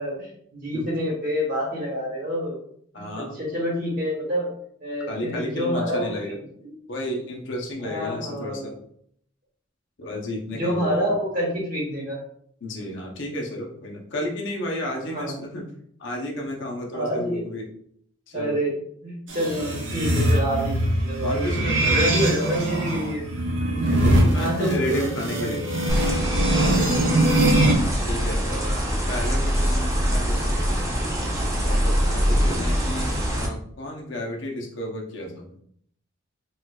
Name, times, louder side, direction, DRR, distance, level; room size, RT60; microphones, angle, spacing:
voice 1, 0.0-2.6 2.9-4.5 4.8-6.3 7.8-8.7 10.5-12.2 15.1-15.4 16.9-17.4 18.3-18.7 19.0-23.2 24.4-25.6 32.2-32.6, equal, 40° right, -3 dB, 1.1 m, -27 dB
voice 2, 2.9-3.4 5.1-6.4 6.9-8.8 10.0-11.1 12.6-15.6 16.0-17.7 18.3-18.6 21.2-22.1 23.8-25.6 26.7-27.1 28.1-30.8 31.6-35.6, left 1 dB, 60° left, 0 dB, 0.6 m, -32 dB
sound 1, 19.3-27.8, right 1 dB, 60° right, 0.6 m, -22 dB
sound 2, 25.9-33.5, equal, 15° right, 0.4 m, -23 dB
4.4 x 2.3 x 2.2 m, 0.67 s
head